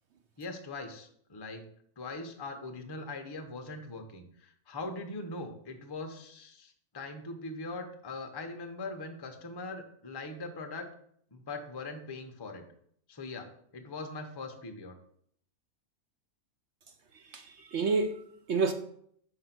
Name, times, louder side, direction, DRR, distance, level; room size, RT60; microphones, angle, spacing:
voice 1, 0.4-1.6 2.0-10.9 11.3-12.6 13.1-13.5 13.7-15.0, left 3 dB, 30° left, 0.4 m, -41 dB
voice 2, 17.3-18.7, right 4 dB, 65° right, 0.7 m, -29 dB
5.3 x 3.9 x 5.8 m
omnidirectional pair, 1.7 m